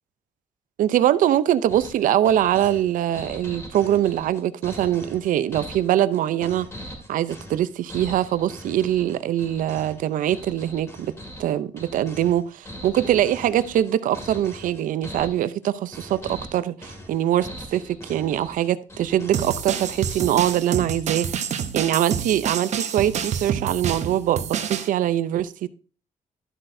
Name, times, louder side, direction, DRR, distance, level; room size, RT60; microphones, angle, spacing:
voice 1, 0.8-6.7 7.1-11.1 11.4-21.3 21.7-25.7, right 11 dB, 80° right, 0.5 m, -23 dB
sound 1, 1.7-20.5, equal, 20° left, 2.3 m, -40 dB
sound 2, 19.3-24.9, right 8 dB, 60° right, 0.8 m, -28 dB
12.0 x 7.7 x 2.6 m
cardioid pair, 145°, 14 cm